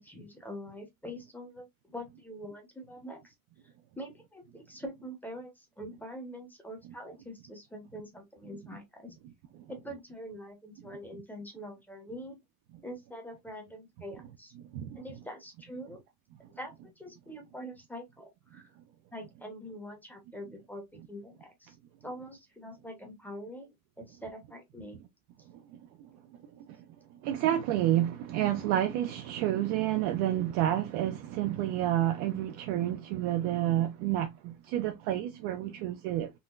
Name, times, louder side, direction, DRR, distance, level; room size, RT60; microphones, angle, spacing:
voice 1, 0.0-3.3 3.9-9.1 9.7-12.4 12.8-14.5 14.9-16.0 16.6-18.7 19.1-21.8 22.0-25.0, equal, 5° left, 0.8 m, -44 dB
voice 2, 27.2-36.3, right 12 dB, 40° right, 0.4 m, -29 dB
3.8 x 2.2 x 2.4 m
supercardioid pair, 130°, 44 cm